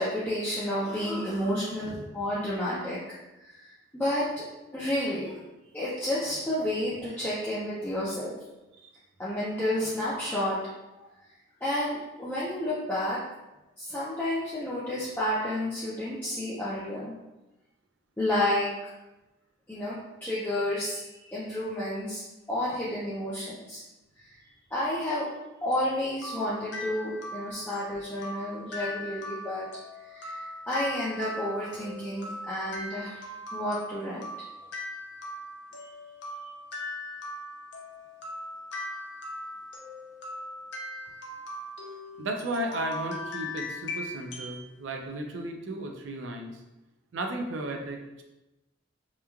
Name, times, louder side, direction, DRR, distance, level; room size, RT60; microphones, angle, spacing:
voice 1, 0.0-3.0 3.4-4.5 4.7-5.4 5.7-8.4 9.2-10.6 10.9-11.1 11.6-13.2 13.8-17.1 18.2-18.7 19.7-20.0 20.2-22.2 22.5-23.8 24.2-24.4 24.7-25.3 25.6-29.7 30.1-33.2 33.5-34.3 35.8-35.9 36.4-36.5, left 1 dB, 10° left, -9 dB, 0.4 m, -31 dB
sound 1, 25.7-44.6, left 1 dB, 65° left, 0.5 m, -40 dB
voice 2, 41.8-46.6 47.1-48.2, right 1 dB, 75° right, 3 dB, 0.4 m, -35 dB
3.0 x 2.3 x 2.3 m, 0.99 s
head